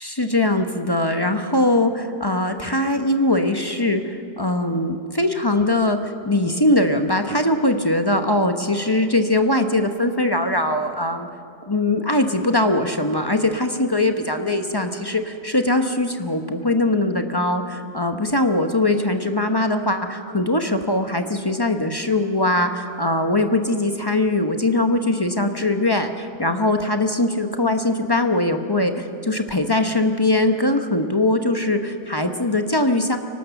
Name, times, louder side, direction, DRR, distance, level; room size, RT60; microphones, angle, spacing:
voice 1, 0.0-11.3 11.7-33.2, left 1 dB, 20° left, 6 dB, 0.8 m, -21 dB
24.5 x 18.5 x 7.1 m, 2.5 s
omnidirectional pair, 1.6 m